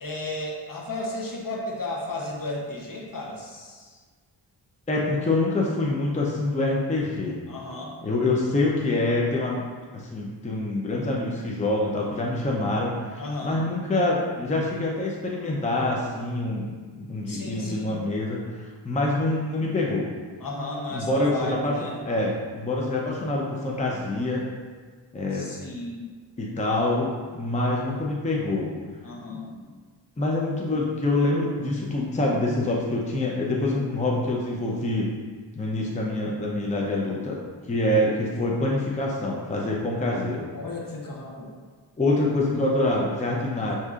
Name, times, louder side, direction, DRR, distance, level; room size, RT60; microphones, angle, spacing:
voice 1, 0.0-4.0 7.5-7.9 13.2-13.6 17.3-18.0 20.4-22.0 25.3-26.1 29.0-29.7 40.5-41.5 43.4-43.7, left 2 dB, 45° left, -2 dB, 0.9 m, -34 dB
voice 2, 4.9-7.4 8.0-9.6 9.9-16.7 17.0-20.1 20.9-21.7 22.0-24.4 25.1-25.5 26.4-28.7 30.2-35.1 35.5-37.4 37.6-40.5 42.0-43.8, left 2 dB, 15° left, -3 dB, 0.6 m, -26 dB
6.1 x 2.7 x 2.4 m, 1.5 s
cardioid pair, 50°, 47 cm